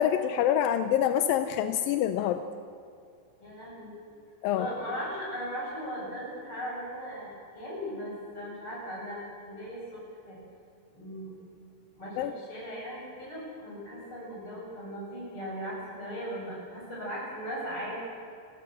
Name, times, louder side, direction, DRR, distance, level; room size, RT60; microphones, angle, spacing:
voice 1, 0.0-2.4 4.4-4.7 12.2-12.3, left 10 dB, 80° left, 9 dB, 2.1 m, -26 dB
voice 2, 3.4-3.9 4.5-9.2 9.5-10.4 10.9-11.3 11.9-18.0, equal, 30° left, -4 dB, 8.2 m, -38 dB
30.0 x 14.5 x 7.7 m, 2.4 s
omnidirectional pair, 4.8 m